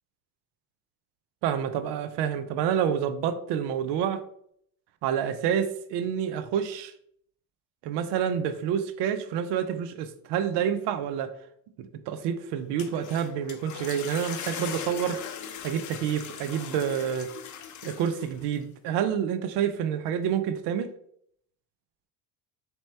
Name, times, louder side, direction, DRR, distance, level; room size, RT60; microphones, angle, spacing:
voice 1, 1.4-4.2 5.0-6.9 7.8-11.3 12.1-15.2 15.6-17.3 17.8-20.9, right 8 dB, 55° right, 11 dB, 0.6 m, -28 dB
sound 1, 12.6-18.6, left 8 dB, 40° left, 0.6 m, -40 dB
4.2 x 3.0 x 3.2 m, 0.69 s
supercardioid pair, 90°, 48 cm